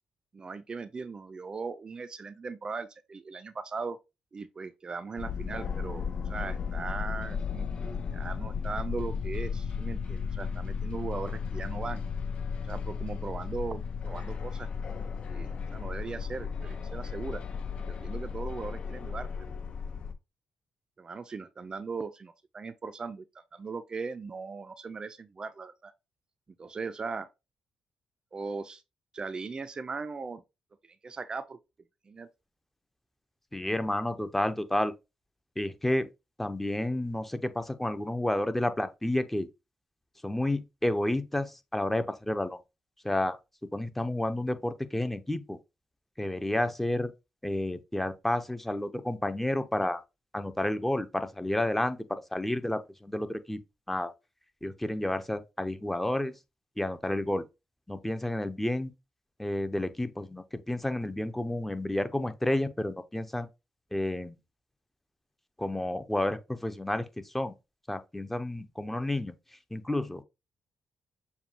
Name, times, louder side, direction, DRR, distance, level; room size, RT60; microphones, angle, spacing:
voice 1, 0.3-4.0 4.3-12.0 12.7-14.7 15.3-17.4 17.9-19.5 21.0-23.3 23.5-25.9 26.6-27.3 28.3-28.8 29.1-30.4 31.0-31.6 32.1-32.3, right 4 dB, 40° right, 0.5 m, -38 dB
sound 1, 5.2-20.1, left 6 dB, 55° left, 0.8 m, -35 dB
voice 2, 33.5-34.9 35.6-36.1 36.4-39.5 40.2-42.6 43.0-43.4 43.7-45.6 46.2-47.1 47.4-50.0 50.3-53.6 53.9-54.1 54.6-56.3 56.8-57.4 57.9-58.9 59.4-63.5 63.9-64.4 65.6-67.0 67.3-67.5 67.9-69.3 69.7-70.2, left 1 dB, 10° left, 0.7 m, -30 dB
7.0 x 2.3 x 2.9 m
supercardioid pair, 55°, 2 cm